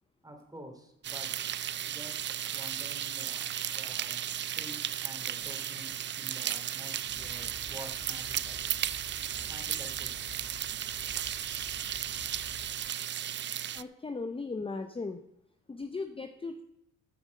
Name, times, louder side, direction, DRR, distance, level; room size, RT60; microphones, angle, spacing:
voice 1, 0.2-1.3 1.8-8.6 9.5-10.1, equal, 10° right, 4 dB, 2.9 m, -49 dB
sound 1, 1.0-13.8, right 10 dB, 40° right, 0.4 m, -35 dB
sound 2, 7.1-12.8, left 3 dB, 75° left, 4.2 m, -51 dB
voice 2, 13.7-15.2 15.7-16.6, left 3 dB, 20° left, 8 dB, 0.8 m, -37 dB
14.0 x 7.1 x 5.3 m, 0.80 s
cardioid pair, 90°, 30 cm